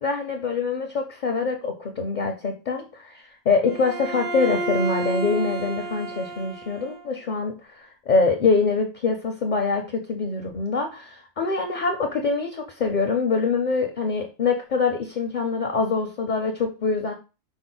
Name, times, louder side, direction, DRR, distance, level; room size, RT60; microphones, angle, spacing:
voice 1, 0.0-17.1, left 4 dB, 50° left, 4 dB, 0.6 m, -24 dB
Bowed string instrument, 3.7-7.1, right 2 dB, 90° right, 2.0 m, -31 dB
5.2 x 2.1 x 3.8 m, 0.31 s
omnidirectional pair, 1.3 m